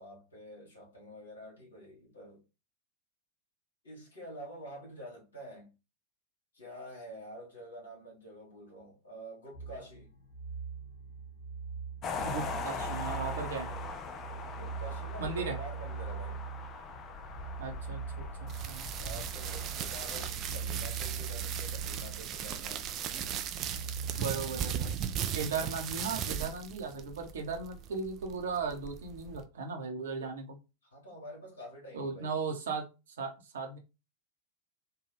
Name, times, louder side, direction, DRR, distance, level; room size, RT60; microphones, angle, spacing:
voice 1, 0.0-2.4 3.8-5.7 6.5-10.1 14.5-16.4 19.0-22.9 30.9-32.4, equal, 70° left, 1.4 m, -48 dB
sound 1, 9.5-25.8, right 5 dB, 55° left, 0.8 m, -41 dB
sound 2, 12.0-20.3, left 5 dB, 30° left, 0.4 m, -41 dB
voice 2, 12.2-13.7 15.2-15.6 17.6-18.9 24.2-25.0 25.3-30.6 31.9-33.8, right 4 dB, 65° right, 0.8 m, -37 dB
sound 3, 18.5-29.4, right 9 dB, 35° right, 0.4 m, -38 dB
3.4 x 2.2 x 3.3 m
figure-of-eight pair, 90°, 0 cm